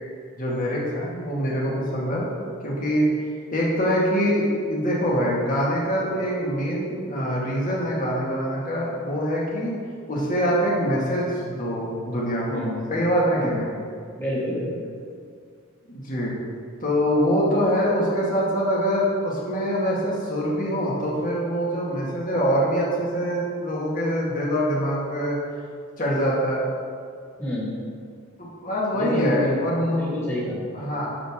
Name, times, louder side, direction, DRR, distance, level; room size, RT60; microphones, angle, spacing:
voice 1, 0.4-2.3 2.6-3.1 3.5-9.7 10.1-13.7 15.9-16.3 16.8-25.4 26.0-26.7 28.4-30.0 30.7-31.1, equal, 35° left, -5 dB, 2.0 m, -24 dB
voice 2, 12.5-12.8 13.4-13.6 14.2-14.9 27.4-27.7 28.9-29.6 29.9-30.6, left 1 dB, 10° left, -6 dB, 2.2 m, -28 dB
11.0 x 6.5 x 3.7 m, 2.2 s
head